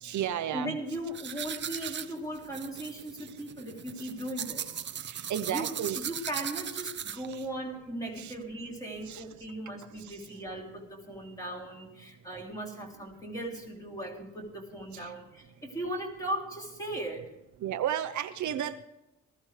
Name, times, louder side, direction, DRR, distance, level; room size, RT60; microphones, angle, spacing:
voice 1, 0.0-0.8 1.8-2.0 4.0-4.1 5.1-6.3 7.1-7.4 8.2-8.3 9.1-9.2 10.0-10.2 14.9-15.1 17.6-18.8, right 10 dB, 65° right, 9 dB, 0.8 m, -34 dB
voice 2, 0.5-5.1 5.5-17.3, right 1 dB, 10° left, -1 dB, 3.3 m, -38 dB
sound 1, 1.1-7.4, right 8 dB, 35° right, 0.7 m, -38 dB
19.0 x 14.5 x 3.3 m, 0.93 s
cardioid pair, 165°, 31 cm